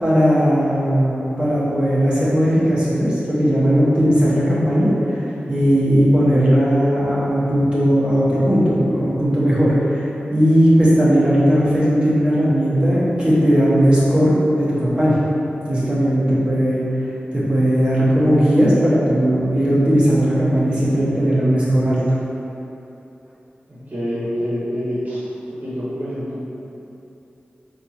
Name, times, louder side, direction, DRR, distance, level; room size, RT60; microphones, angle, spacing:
voice 1, 0.0-4.9 5.5-10.1 10.3-15.2 15.7-16.8 17.3-22.0, equal, 30° right, -10 dB, 1.0 m, -17 dB
voice 2, 23.9-25.2 25.5-26.4, equal, 45° right, -10 dB, 1.2 m, -26 dB
3.6 x 2.7 x 2.9 m, 2.9 s
cardioid pair, 45°, 4 cm